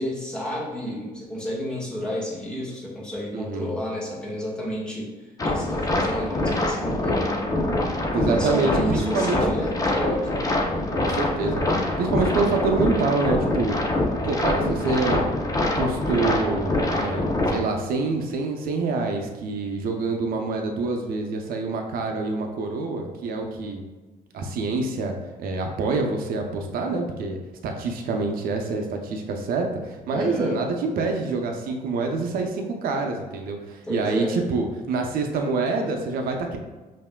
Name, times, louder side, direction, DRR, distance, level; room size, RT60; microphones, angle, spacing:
voice 1, 0.0-5.1 5.4-7.5 8.1-10.3 30.1-30.6 33.9-34.4, left 1 dB, 5° left, -6 dB, 1.4 m, -31 dB
voice 2, 3.3-3.7 8.1-9.5 11.0-13.8 14.2-15.3 15.6-23.8 24.3-27.4 27.6-36.6, right 3 dB, 70° right, 3 dB, 0.7 m, -26 dB
sound 1, 5.4-17.6, left 1 dB, 20° left, 0.6 m, -25 dB
5.6 x 2.7 x 2.2 m, 1.2 s
cardioid pair, 110°, 16 cm